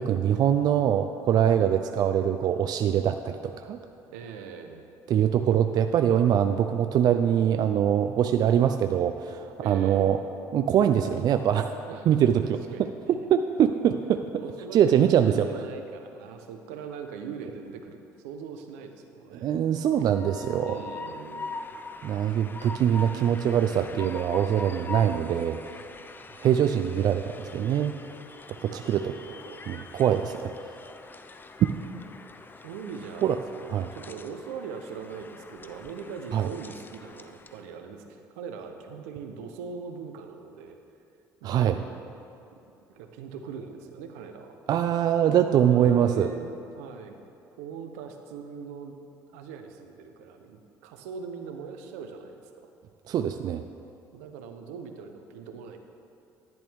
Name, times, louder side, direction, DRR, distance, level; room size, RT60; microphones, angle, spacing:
voice 1, 0.0-3.8 5.1-10.2 10.5-11.7 12.1-12.6 13.3-14.2 14.7-15.5 19.4-20.8 22.0-25.6 26.4-27.9 28.6-29.1 29.7-30.5 33.2-33.4 33.7-33.9 36.3-36.5 41.4-41.8 44.7-46.3 53.1-53.6, right 9 dB, 55° right, 8 dB, 0.4 m, -23 dB
voice 2, 4.1-4.9 9.6-10.1 11.8-13.3 14.4-19.5 20.6-21.5 25.0-25.6 28.6-29.6 32.6-40.8 41.4-42.0 42.9-44.6 45.6-47.2 47.6-49.0 49.3-52.7 54.1-55.8, right 6 dB, 85° right, 6 dB, 0.8 m, -41 dB
Train, 19.9-37.7, left 3 dB, 25° left, 0.6 m, -43 dB
10.5 x 10.5 x 3.6 m, 2.7 s
hypercardioid pair, 65°, 8 cm